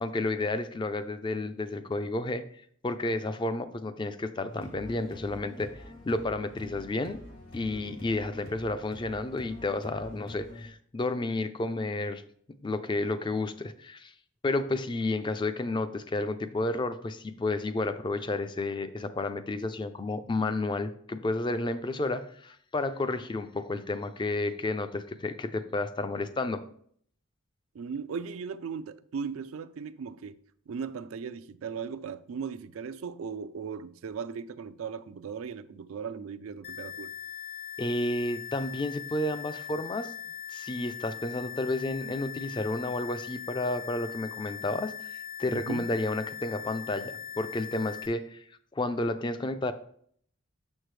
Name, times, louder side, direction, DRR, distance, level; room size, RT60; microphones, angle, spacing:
voice 1, 0.0-2.4 2.8-7.2 7.5-12.2 12.6-14.1 14.4-26.6 37.8-40.1 40.5-48.4 48.7-49.7, left 2 dB, 25° left, 0.4 m, -31 dB
sound 1, 4.5-10.7, left 1 dB, 90° left, 3.2 m, -46 dB
voice 2, 27.7-30.4 30.7-37.1 45.5-45.9, right 6 dB, 85° right, 0.4 m, -37 dB
sound 2, 36.6-48.1, left 9 dB, 55° left, 1.1 m, -41 dB
6.6 x 6.3 x 3.2 m
head